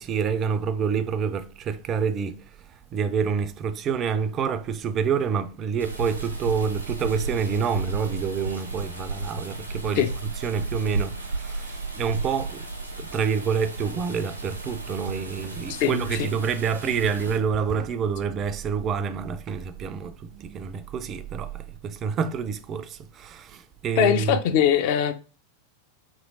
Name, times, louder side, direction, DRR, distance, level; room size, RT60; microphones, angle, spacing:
voice 1, 0.0-24.4 24.8-24.9, right 6 dB, 30° right, 0.3 m, -28 dB
sound 1, 5.8-17.4, right 3 dB, 85° right, 0.8 m, -33 dB
voice 2, 15.7-16.3 24.0-25.1, left 9 dB, 50° left, 0.4 m, -22 dB
3.1 x 2.9 x 2.5 m
figure-of-eight pair, 90°, 0 cm